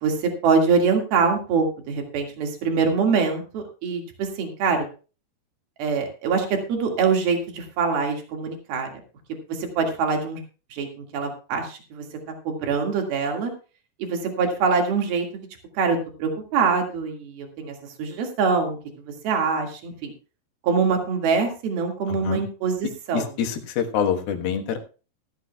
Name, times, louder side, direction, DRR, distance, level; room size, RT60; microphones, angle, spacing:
voice 1, 0.0-4.9 5.8-8.9 9.5-10.4 10.7-12.0 12.5-13.5 14.0-15.3 15.8-18.8 19.2-20.1 20.6-23.3, right 5 dB, 80° right, 3 dB, 3.9 m, -24 dB
voice 2, 22.1-22.4 23.1-24.8, left 8 dB, 80° left, 4 dB, 3.3 m, -26 dB
16.0 x 14.0 x 2.3 m, 0.34 s
omnidirectional pair, 4.3 m